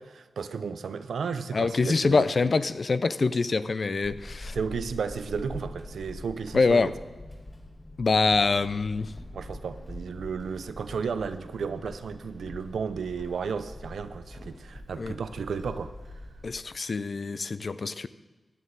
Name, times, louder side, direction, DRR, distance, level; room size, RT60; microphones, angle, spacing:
voice 1, 0.0-2.5 4.5-6.9 9.3-15.9, right 6 dB, 85° right, 11 dB, 0.6 m, -33 dB
voice 2, 1.5-4.5 6.5-6.9 8.0-9.1 15.0-15.1 16.4-18.1, left 4 dB, 55° left, 14 dB, 0.5 m, -25 dB
Walk footsteps / Squeak, 4.0-16.7, left 1 dB, 25° left, 4.3 m, -44 dB
14.5 x 10.5 x 4.0 m, 1.2 s
cardioid pair, 55°, 0 cm